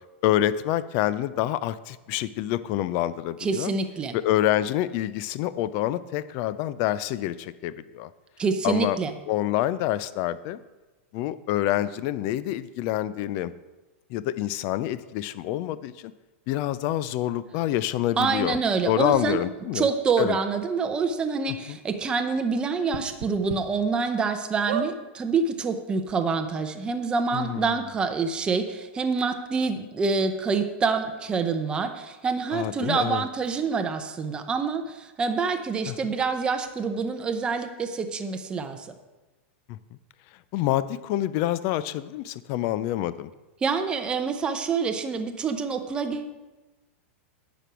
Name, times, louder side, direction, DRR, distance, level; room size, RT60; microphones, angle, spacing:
voice 1, 0.2-3.7 4.1-8.1 8.6-9.0 9.3-10.6 11.1-13.5 14.1-16.1 16.5-18.6 18.9-19.9 20.2-20.4 21.7-21.8 27.3-27.8 32.5-33.2 35.9-36.1 39.7-39.8 40.5-43.3, left 13 dB, 35° left, 16 dB, 0.4 m, -27 dB
voice 2, 3.4-4.2 8.4-9.1 18.2-19.4 19.7-38.9 43.6-46.3, right 4 dB, 15° right, 7 dB, 0.7 m, -26 dB
sound 1, 18.5-18.6 19.1-19.2 20.2-20.3 20.6-20.7 21.1-21.2 22.9-23.6 24.1-24.2 24.6-24.9 25.8-25.9 26.0-26.1, right 8 dB, 65° right, 0.8 m, -32 dB
9.9 x 6.1 x 6.1 m, 1.1 s
supercardioid pair, 160°, 7 cm